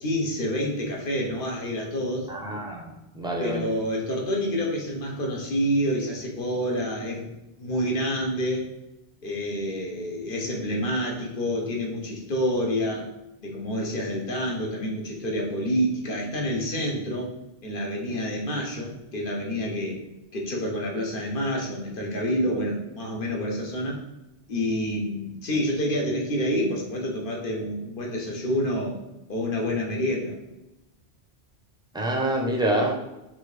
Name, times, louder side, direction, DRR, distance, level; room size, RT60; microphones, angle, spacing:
voice 1, 0.0-2.3 3.4-7.3 7.6-8.7 9.2-13.1 13.4-17.3 17.6-20.0 20.3-24.0 24.5-29.0 29.3-30.4, equal, 60° left, -1 dB, 1.1 m, -28 dB
voice 2, 2.3-3.7 31.9-32.9, right 1 dB, 5° right, -1 dB, 0.6 m, -27 dB
5.9 x 2.7 x 3.2 m, 0.95 s
omnidirectional pair, 1.0 m